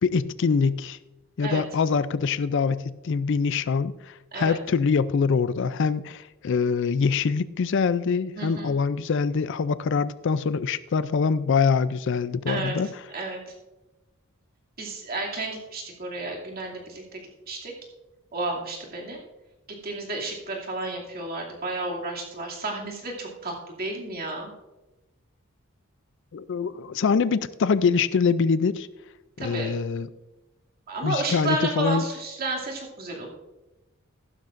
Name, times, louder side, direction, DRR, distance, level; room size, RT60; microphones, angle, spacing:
voice 1, 0.0-1.0 1.4-12.9 26.3-28.9 29.4-30.1 31.0-32.0, left 5 dB, 55° left, 0.4 m, -24 dB
voice 2, 8.4-8.7 12.5-13.5 14.8-17.2 17.5-17.7 18.3-19.2 19.8-24.5 29.4-29.7 30.9-33.3, right 2 dB, 45° right, 2.5 m, -32 dB
15.0 x 12.0 x 2.5 m
head